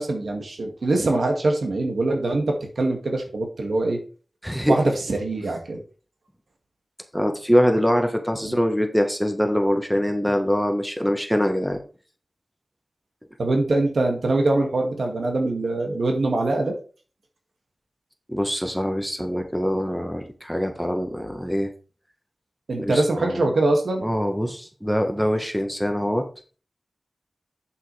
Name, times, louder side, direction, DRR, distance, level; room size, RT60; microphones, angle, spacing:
voice 1, 0.0-4.0 4.7-5.8 8.4-8.6 13.4-16.7 22.7-24.1, right 2 dB, 80° right, 3 dB, 2.2 m, -23 dB
voice 2, 4.4-4.7 7.1-11.8 18.3-21.7 22.8-23.4 24.0-26.3, equal, ahead, 5 dB, 1.4 m, -23 dB
8.6 x 7.4 x 3.4 m, 0.37 s
wide cardioid pair, 90°, 0 cm